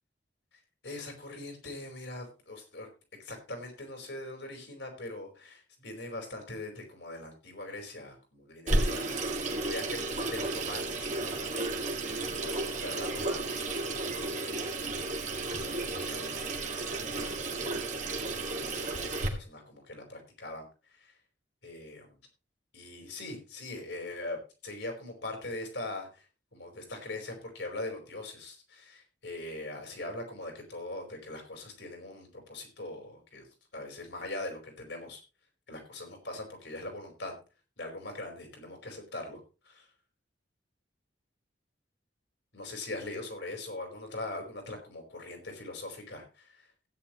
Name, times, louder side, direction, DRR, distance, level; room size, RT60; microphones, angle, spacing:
voice 1, 0.8-2.9 3.2-12.0 12.3-14.8 15.6-17.4 18.3-18.6 19.0-20.7 21.0-21.1 21.6-22.2 22.7-24.4 24.6-26.2 26.5-33.5 33.7-35.2 35.7-37.3 37.8-39.9 42.5-46.7, left 2 dB, 70° left, 4 dB, 4.7 m, -42 dB
Water tap faucet / Sink (filling or washing), 8.7-19.3, right 2 dB, 40° right, 2.0 m, -33 dB
15.5 x 9.9 x 3.1 m, 0.32 s
head